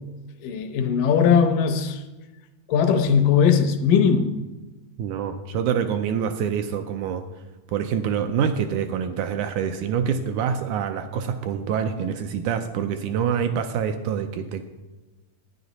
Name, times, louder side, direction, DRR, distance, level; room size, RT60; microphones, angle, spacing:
voice 1, 0.4-2.0 2.7-4.3, left 6 dB, 75° left, 7 dB, 2.4 m, -19 dB
voice 2, 5.0-7.2 7.7-14.7, right 7 dB, 80° right, 7 dB, 1.8 m, -26 dB
11.5 x 9.5 x 4.0 m, 1.1 s
omnidirectional pair, 4.0 m